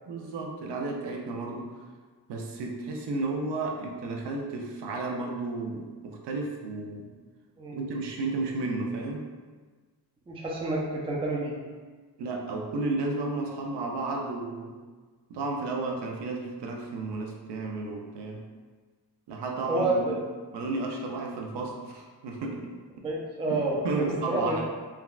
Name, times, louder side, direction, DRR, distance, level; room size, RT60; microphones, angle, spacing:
voice 1, 0.1-1.8 2.3-7.1 7.7-9.3 12.2-14.8 15.3-18.4 19.3-20.2 20.5-23.1 23.5-23.6 23.8-24.6, right 3 dB, 75° right, 1 dB, 0.5 m, -33 dB
voice 2, 10.3-11.6 19.7-20.2 23.0-24.6, right 2 dB, 15° right, -3 dB, 0.3 m, -29 dB
3.5 x 2.1 x 2.3 m, 1.4 s
wide cardioid pair, 150°, 41 cm